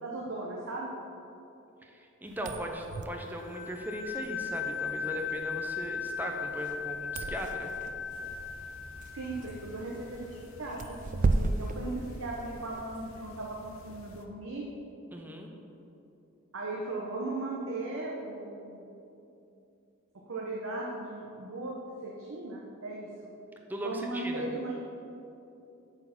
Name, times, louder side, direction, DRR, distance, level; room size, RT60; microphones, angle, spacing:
voice 1, 0.0-0.9 9.1-10.3 10.6-14.7 16.5-18.8 20.3-21.8 22.0-23.1 23.8-24.7, right 2 dB, 85° right, -3 dB, 0.9 m, -37 dB
voice 2, 1.8-7.7 15.1-15.5 23.7-24.5, equal, 10° right, 2 dB, 0.7 m, -38 dB
sound 1, 2.3-12.8, right 3 dB, 40° right, 0.3 m, -36 dB
sound 2, 3.3-9.8, left 6 dB, 45° left, 1.3 m, -37 dB
sound 3, 8.1-14.2, left 2 dB, 80° left, 0.6 m, -51 dB
8.0 x 4.4 x 5.8 m, 2.8 s
head